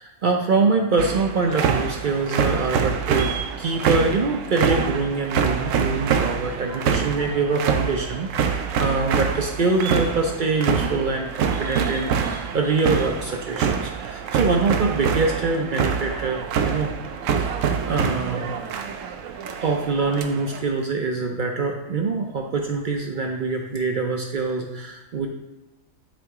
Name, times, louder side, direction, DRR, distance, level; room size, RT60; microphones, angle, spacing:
voice 1, 0.0-16.9 17.4-17.5 17.8-18.5 19.4-25.3, right 3 dB, 55° right, 2 dB, 0.6 m, -24 dB
sound 1, 1.0-20.6, right 7 dB, 80° right, 0.9 m, -26 dB
7.5 x 2.7 x 4.7 m, 1.0 s
omnidirectional pair, 1.3 m